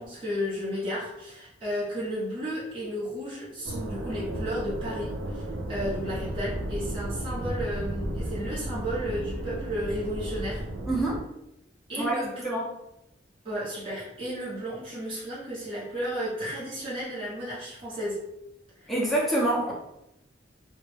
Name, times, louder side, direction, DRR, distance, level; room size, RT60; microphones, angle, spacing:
voice 1, 0.0-10.6 11.9-12.5 13.4-18.2 18.8-18.9, equal, 30° right, -10 dB, 0.8 m, -33 dB
sound 1, 3.6-11.2, right 1 dB, 90° right, 0.4 m, -34 dB
voice 2, 10.9-11.2 12.0-12.2 12.4-12.7 18.9-19.7, right 1 dB, ahead, -6 dB, 0.5 m, -26 dB
2.2 x 2.0 x 3.1 m, 0.87 s
head